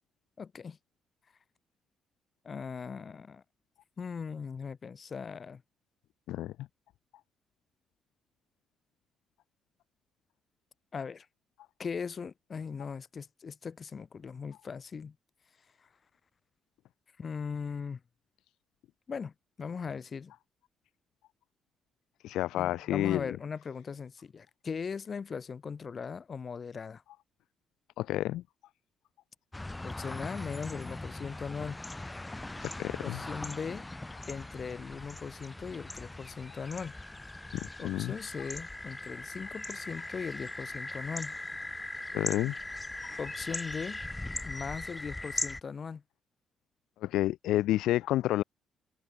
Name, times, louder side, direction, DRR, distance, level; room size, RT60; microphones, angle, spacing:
voice 1, 0.4-0.8 2.4-3.4 4.0-5.6 10.9-11.3 11.8-15.1 17.2-18.0 19.1-19.3 19.6-20.3 22.5-27.0 29.8-31.8 33.0-33.9 34.3-37.0 37.8-41.4 43.2-44.0 44.4-46.0, left 6 dB, 45° left, 4.7 m, -39 dB
voice 2, 22.2-23.3 28.0-28.4 32.6-33.2 37.5-38.1 42.1-42.5 43.0-43.2 47.0-48.4, left 15 dB, 90° left, 0.9 m, -30 dB
sound 1, 29.5-45.6, left 2 dB, 15° left, 2.0 m, -40 dB
cardioid pair, 85°, 0 cm